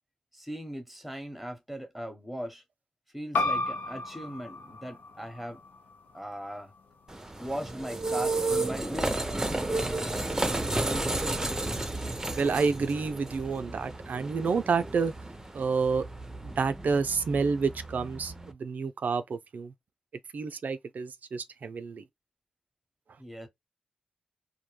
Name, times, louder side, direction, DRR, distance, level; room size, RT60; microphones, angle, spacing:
voice 1, 0.3-2.6 3.1-5.6 6.1-6.7 7.4-9.3 23.2-23.5, equal, ahead, 0.9 m, -39 dB
sound 1, 3.3-8.5, left 2 dB, 85° left, 0.6 m, -35 dB
sound 2, 7.1-18.5, right 2 dB, 20° right, 0.6 m, -32 dB
voice 2, 12.4-15.1 15.5-16.0 16.4-19.7 20.3-22.0, right 5 dB, 65° right, 0.4 m, -29 dB
2.1 x 2.1 x 3.0 m
cardioid pair, 55°, 3 cm